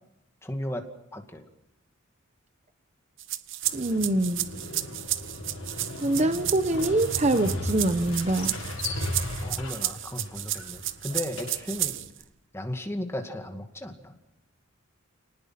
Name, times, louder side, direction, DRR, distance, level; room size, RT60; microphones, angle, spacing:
voice 1, 0.4-0.8 1.1-1.4 8.8-9.0 9.4-12.0 12.5-14.1, left 1 dB, 10° left, 5 dB, 2.2 m, -35 dB
sound 1, 3.2-12.2, right 14 dB, 60° right, 1.0 m, -32 dB
Motorcycle, 3.6-12.0, left 1 dB, 75° left, 6.9 m, -36 dB
voice 2, 3.7-4.6 6.0-8.5, right 1 dB, 30° right, 10 dB, 0.9 m, -25 dB
28.5 x 19.5 x 5.9 m, 0.89 s
head